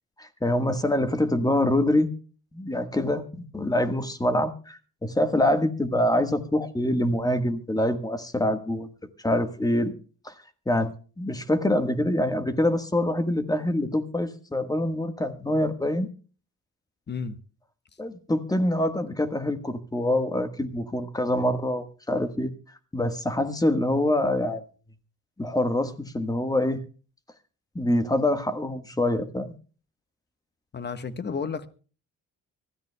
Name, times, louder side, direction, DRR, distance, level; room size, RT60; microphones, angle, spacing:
voice 1, 0.2-2.1 2.5-8.9 9.2-9.9 10.2-10.3 10.7-16.1 18.0-22.5 22.9-24.6 25.4-26.8 27.7-29.5, left 1 dB, 10° left, 1.4 m, -25 dB
voice 2, 30.7-31.7, left 5 dB, 35° left, 1.2 m, -32 dB
25.0 x 14.0 x 2.2 m
cardioid pair, 90°, 30 cm